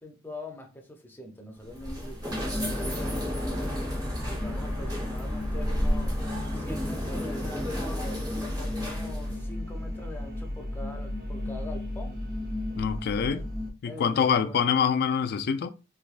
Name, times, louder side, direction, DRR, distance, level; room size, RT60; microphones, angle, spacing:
voice 1, 0.0-3.7 4.2-6.2 6.5-12.3 13.2-13.5 13.8-14.6, left 1 dB, 10° left, 0.6 m, -44 dB
sound 1, 1.6-9.4, equal, 20° right, 0.9 m, -33 dB
sound 2, 2.3-13.7, left 1 dB, 50° right, 0.9 m, -34 dB
voice 2, 12.8-13.5 13.8-15.7, left 7 dB, 50° left, 0.3 m, -25 dB
3.3 x 3.1 x 2.4 m
head